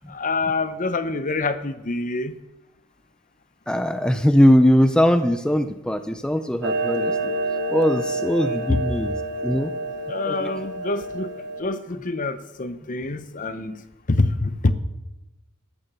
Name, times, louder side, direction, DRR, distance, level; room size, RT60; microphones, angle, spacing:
voice 1, 0.0-2.3 8.4-8.8 10.1-11.3 11.6-13.8 14.1-14.7, left 3 dB, 40° left, 0.8 m, -26 dB
voice 2, 3.7-7.3 7.7-9.1 9.4-9.7 10.2-10.5, equal, 5° left, 0.5 m, -20 dB
Clock, 6.6-11.6, right 2 dB, 55° right, 1.1 m, -28 dB
13.5 x 10.5 x 6.9 m
head